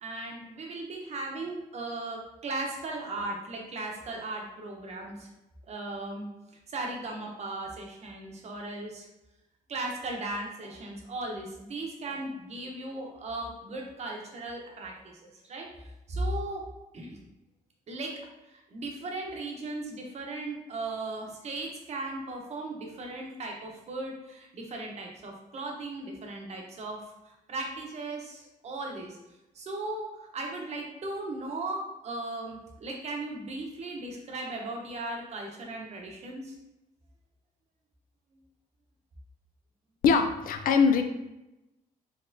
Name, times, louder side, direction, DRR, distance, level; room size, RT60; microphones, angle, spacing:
voice 1, 0.0-5.3 5.6-6.3 6.7-9.1 9.7-15.0 15.4-16.7 16.9-17.2 17.9-29.2 29.5-36.6, right 2 dB, 45° right, 0 dB, 0.8 m, -37 dB
voice 2, 40.0-41.0, left 5 dB, 65° left, 6 dB, 0.4 m, -22 dB
4.1 x 3.0 x 2.6 m, 0.94 s
cardioid pair, 135°, 15 cm